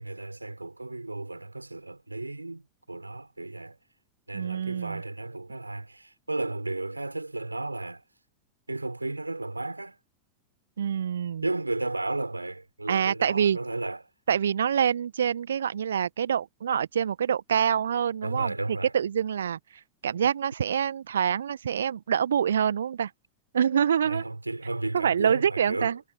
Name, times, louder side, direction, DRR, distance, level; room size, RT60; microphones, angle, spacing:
voice 1, 0.0-3.8 4.3-8.0 8.7-10.0 11.4-14.1 18.2-18.9 24.0-26.0, right 2 dB, 85° right, 4.2 m, -33 dB
voice 2, 4.3-5.0 10.8-11.4 12.9-13.6 14.3-18.5 18.9-19.6 20.0-23.1 23.5-24.2 24.9-26.0, right 8 dB, 65° right, 1.1 m, -26 dB
figure-of-eight pair, 90°, 0 cm